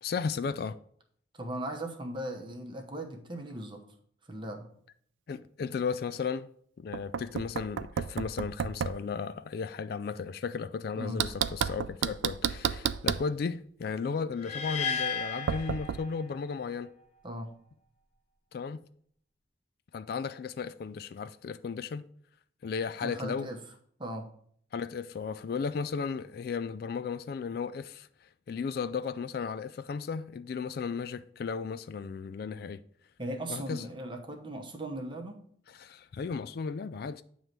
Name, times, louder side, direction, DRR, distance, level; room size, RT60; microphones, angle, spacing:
voice 1, 0.0-0.8 5.3-6.5 6.8-16.9 18.5-18.8 19.9-22.0 22.6-23.5 24.7-32.8 33.5-33.8 35.7-37.2, left 5 dB, 55° left, 0.3 m, -35 dB
voice 2, 1.3-3.9 4.3-4.7 11.0-11.2 17.2-17.5 23.0-23.6 24.0-24.3 33.2-35.5, right 1 dB, 25° right, 0.9 m, -38 dB
Knock, 6.9-9.0 11.2-13.3 15.5-16.0, right 8 dB, 85° right, 0.4 m, -32 dB
sound 1, 14.4-16.6, left 5 dB, 35° left, 1.0 m, -34 dB
9.1 x 3.1 x 6.5 m
head